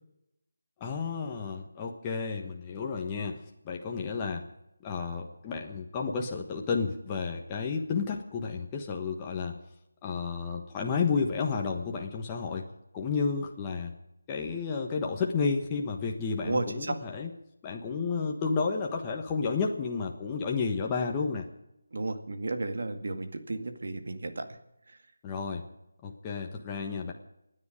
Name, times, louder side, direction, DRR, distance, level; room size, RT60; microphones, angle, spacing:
voice 1, 0.8-4.4 4.8-9.6 10.0-13.9 14.3-17.3 17.6-21.5 25.2-25.7 26.0-27.1, left 5 dB, 15° left, 0 dB, 1.3 m, -31 dB
voice 2, 16.4-17.0 21.9-24.5, right 2 dB, 60° right, 7 dB, 2.0 m, -33 dB
28.5 x 10.0 x 5.1 m, 0.84 s
figure-of-eight pair, 165°, 0 cm